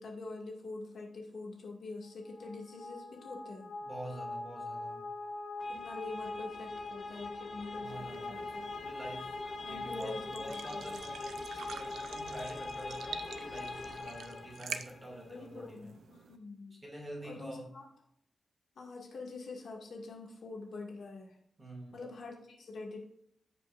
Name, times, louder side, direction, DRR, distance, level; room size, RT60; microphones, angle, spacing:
voice 1, 0.0-3.7 5.7-8.7 9.6-11.0 15.3-16.8 17.2-17.8 18.8-21.4 21.9-23.0, left 3 dB, 65° left, 0 dB, 2.0 m, -45 dB
sound 1, 2.3-15.1, left 2 dB, 45° left, 1.2 m, -42 dB
voice 2, 3.8-5.0 7.8-8.5 8.8-9.3 9.6-15.9 16.8-17.7 21.6-22.0, right 1 dB, 20° right, -1 dB, 2.4 m, -46 dB
sound 2, 7.8-16.4, right 6 dB, 90° right, 0.6 m, -48 dB
15.0 x 5.5 x 2.5 m, 0.70 s
wide cardioid pair, 175°, 0 cm